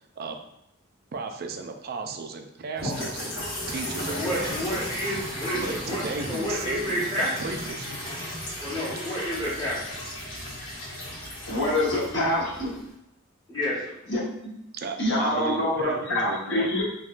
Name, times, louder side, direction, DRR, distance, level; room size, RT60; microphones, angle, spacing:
voice 1, 1.1-4.8 5.6-7.1 7.4-7.9 14.8-16.8, right 4 dB, 45° right, 5 dB, 0.3 m, -35 dB
sound 1, 2.8-12.9, left 1 dB, 75° left, 1.4 m, -35 dB
voice 2, 4.1-7.5 8.6-10.0 13.5-14.0, equal, 20° left, -8 dB, 0.8 m, -30 dB
voice 3, 11.5-12.7 14.1-14.2 15.0-16.8, left 1 dB, 60° left, -5 dB, 1.0 m, -25 dB
3.6 x 2.2 x 2.4 m, 0.82 s
head